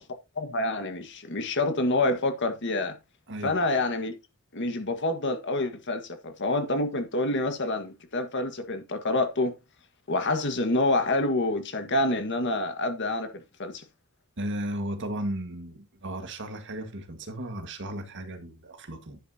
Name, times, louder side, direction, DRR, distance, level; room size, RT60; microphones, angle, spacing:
voice 1, 0.3-2.9 3.4-4.1 4.5-9.5 10.1-13.8, left 2 dB, 55° left, 1.6 m, -27 dB
voice 2, 3.3-3.6 14.4-19.2, right 1 dB, 55° right, 1.8 m, -35 dB
10.0 x 9.4 x 2.8 m
head